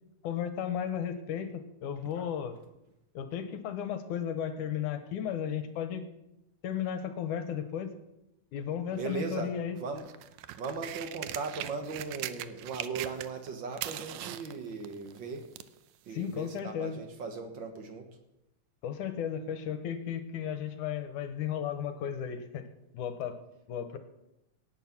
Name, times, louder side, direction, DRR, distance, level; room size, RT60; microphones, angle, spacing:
voice 1, 0.2-2.6 3.1-6.1 6.6-7.9 8.5-9.8 16.1-17.0 18.8-22.7 22.9-23.4 23.7-24.0, left 8 dB, 70° left, 9 dB, 2.4 m, -34 dB
voice 2, 8.9-10.1 10.6-15.5 16.1-18.1, right 4 dB, 55° right, 5 dB, 1.4 m, -38 dB
sound 1, 9.9-13.5 13.7-15.8 16.6-16.7, right 13 dB, 85° right, 1.6 m, -40 dB
17.5 x 9.2 x 5.9 m, 0.89 s
omnidirectional pair, 4.1 m